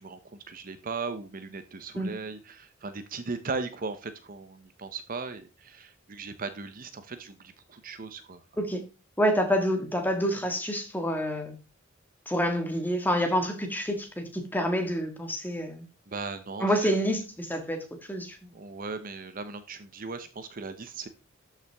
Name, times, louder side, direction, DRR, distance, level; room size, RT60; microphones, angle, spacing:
voice 1, 0.0-8.4 16.1-16.9 18.5-21.1, right 4 dB, 45° right, 0.7 m, -38 dB
voice 2, 9.2-11.6 12.3-15.8 16.6-18.4, equal, 10° left, 1.6 m, -28 dB
12.5 x 5.7 x 3.4 m
head